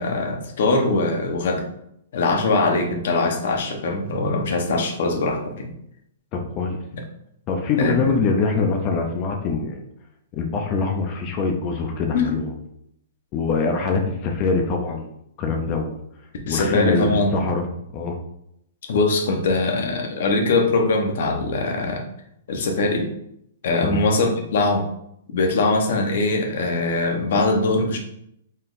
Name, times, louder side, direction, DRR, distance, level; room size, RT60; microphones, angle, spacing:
voice 1, 0.0-1.6 2.1-5.7 7.8-8.1 12.1-12.3 16.5-17.4 18.9-22.1 22.5-23.1 23.6-24.8 25.3-28.0, left 3 dB, 60° left, 2 dB, 1.0 m, -22 dB
voice 2, 6.3-6.8 7.5-9.8 10.3-12.5 13.3-15.1 15.4-16.0 16.5-17.7 17.9-18.2 23.8-24.0, left 4 dB, 30° left, 3 dB, 0.5 m, -24 dB
4.2 x 3.7 x 2.6 m, 0.75 s
hypercardioid pair, 160°, 0 cm